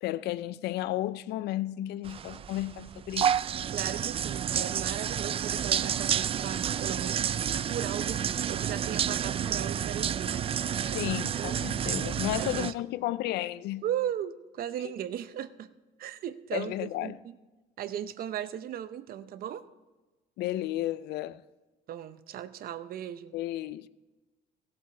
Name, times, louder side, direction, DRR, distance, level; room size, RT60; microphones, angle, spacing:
voice 1, 0.0-3.4 10.9-13.8 16.5-17.2 20.4-21.4 23.3-23.9, left 14 dB, 80° left, 0.5 m, -33 dB
sound 1, 2.0-12.7, right 9 dB, 35° right, 0.3 m, -30 dB
voice 2, 3.7-7.2 7.7-8.2 8.5-10.5 10.9-11.6 12.4-12.7 13.8-15.7 16.0-17.4 17.8-19.6 21.9-23.3, right 10 dB, 60° right, 0.7 m, -37 dB
17.0 x 7.8 x 4.3 m
cardioid pair, 110°, 17 cm